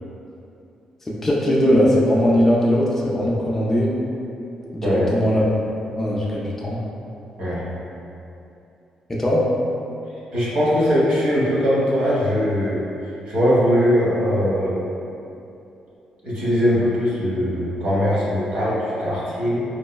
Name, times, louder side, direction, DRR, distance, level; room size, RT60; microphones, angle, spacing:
voice 1, 1.1-3.9 4.7-5.4 5.9-6.8 9.1-9.4, equal, 15° left, -5 dB, 0.3 m, -19 dB
voice 2, 10.3-12.8 13.3-14.8 16.2-19.6, equal, 60° right, -8 dB, 1.0 m, -20 dB
4.6 x 2.0 x 2.2 m, 2.7 s
cardioid pair, 170°, 2 cm